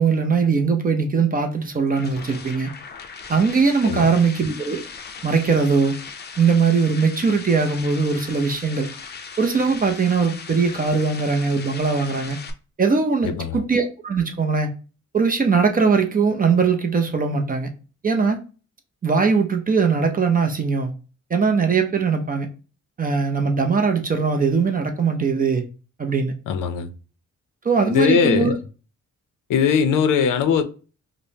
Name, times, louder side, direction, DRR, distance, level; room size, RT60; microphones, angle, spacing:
voice 1, 0.0-2.7 3.3-4.8 5.2-6.0 6.4-8.9 9.4-12.4 12.8-14.7 15.1-17.7 18.0-18.4 19.0-20.9 21.3-22.5 23.0-25.7 26.0-26.3 27.6-28.6, right 5 dB, 30° right, 0.5 m, -20 dB
sound 1, 1.5-12.5, left 5 dB, 35° left, 0.5 m, -38 dB
voice 2, 13.2-13.6 26.5-26.9 27.9-28.5 29.5-30.6, left 7 dB, 85° left, 0.5 m, -20 dB
5.0 x 2.0 x 2.7 m
wide cardioid pair, 135°, 31 cm